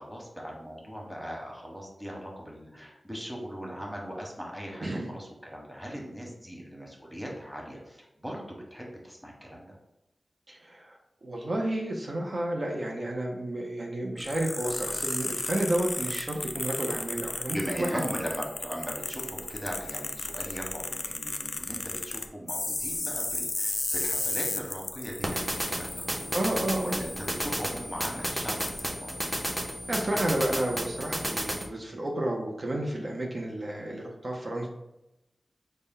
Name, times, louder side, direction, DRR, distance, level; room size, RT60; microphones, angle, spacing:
voice 1, 0.0-9.7 17.5-26.3 26.8-29.3, equal, ahead, -2 dB, 1.1 m, -39 dB
voice 2, 10.5-17.9 26.3-27.0 29.9-34.7, right 1 dB, 50° right, -1 dB, 0.6 m, -31 dB
sound 1, 14.2-27.6 28.0-28.1 28.6-28.8, left 2 dB, 45° left, 0.3 m, -34 dB
sound 2, 25.2-31.7, equal, 15° right, 0.7 m, -33 dB
4.0 x 2.1 x 3.7 m, 0.91 s
wide cardioid pair, 65°, 0 cm